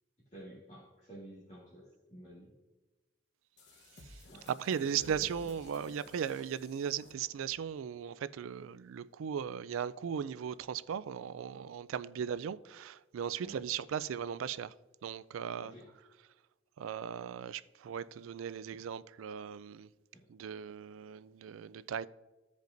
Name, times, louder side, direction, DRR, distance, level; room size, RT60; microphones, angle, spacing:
voice 1, 0.3-2.5 4.3-4.5 4.8-5.3 13.4-13.6 15.6-15.9 20.1-20.2, equal, 35° left, 1.8 m, -51 dB
sound 1, 3.6-7.7, left 1 dB, 60° left, 1.1 m, -56 dB
voice 2, 4.0-14.7 15.0-15.7 16.8-19.9 20.3-22.1, right 8 dB, 90° right, 0.3 m, -37 dB
15.0 x 5.2 x 2.6 m
head